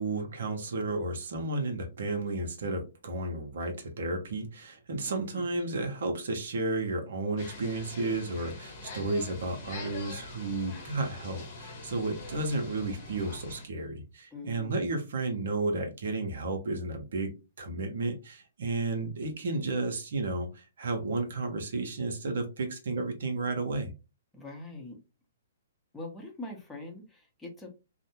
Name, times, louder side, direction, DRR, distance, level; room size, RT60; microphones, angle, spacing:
voice 1, 0.0-23.9, right 2 dB, 65° right, 0.6 m, -32 dB
voice 2, 5.1-5.6 14.3-14.8 24.3-25.0 25.9-27.7, left 2 dB, 10° left, 0.7 m, -43 dB
sound 1, 7.4-13.7, left 3 dB, 45° left, 0.9 m, -44 dB
2.5 x 2.1 x 2.8 m
figure-of-eight pair, 125°, 0 cm